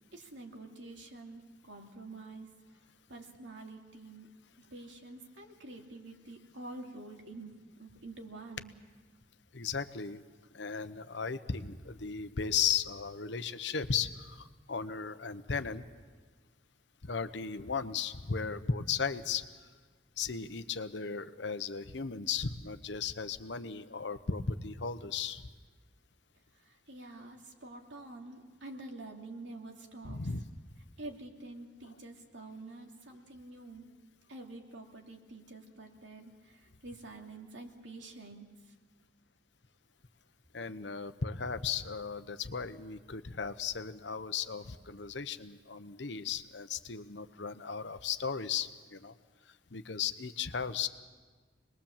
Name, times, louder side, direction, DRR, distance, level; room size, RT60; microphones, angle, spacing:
voice 1, 0.1-2.5 3.1-4.3 4.6-8.7 26.5-30.2 31.0-33.9 34.3-38.7, right 2 dB, 85° right, 1 dB, 2.8 m, -48 dB
voice 2, 9.5-10.2 10.5-15.8 17.0-19.5 20.2-25.4 30.0-30.4 40.5-49.1 49.7-50.9, left 6 dB, 75° left, 10 dB, 1.0 m, -36 dB
26.0 x 21.0 x 7.4 m, 1.4 s
head